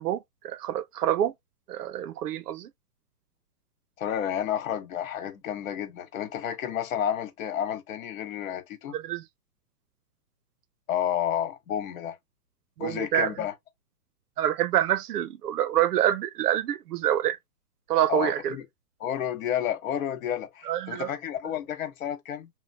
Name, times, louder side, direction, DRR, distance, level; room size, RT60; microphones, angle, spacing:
voice 1, 0.0-1.3 1.7-2.7 8.9-9.2 12.8-13.3 14.4-17.4 17.9-18.6 20.6-21.1, right 11 dB, 80° right, 0.5 m, -26 dB
voice 2, 4.0-8.9 10.9-12.2 12.8-13.5 18.1-18.6 19.0-22.5, left 10 dB, 60° left, 1.3 m, -31 dB
2.9 x 2.1 x 2.7 m
hypercardioid pair, 125°, 46 cm